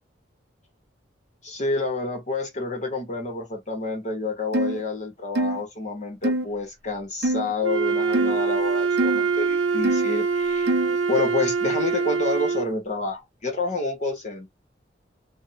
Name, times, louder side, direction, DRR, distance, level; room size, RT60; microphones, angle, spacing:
voice 1, 1.4-10.7 11.1-14.5, left 3 dB, 40° left, 0.9 m, -28 dB
sound 1, 4.5-4.8 5.4-5.6 6.2-6.5 7.2-7.5 8.1-8.4 9.0-9.2 9.8-10.1 10.7-11.0, right 1 dB, 60° right, 0.4 m, -24 dB
Wind instrument woodwind instrument, 7.6-12.8, right 5 dB, 80° right, 0.9 m, -24 dB
2.6 x 2.0 x 2.6 m
head